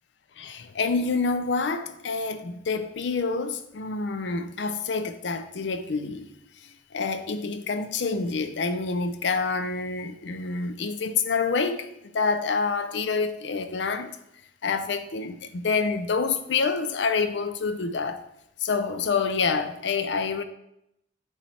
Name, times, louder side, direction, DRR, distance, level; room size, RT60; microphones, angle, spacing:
voice 1, 0.4-6.3 6.6-14.2 14.6-18.2 18.6-20.4, left 4 dB, 75° left, 0.5 m, -27 dB
8.4 x 3.2 x 4.2 m
head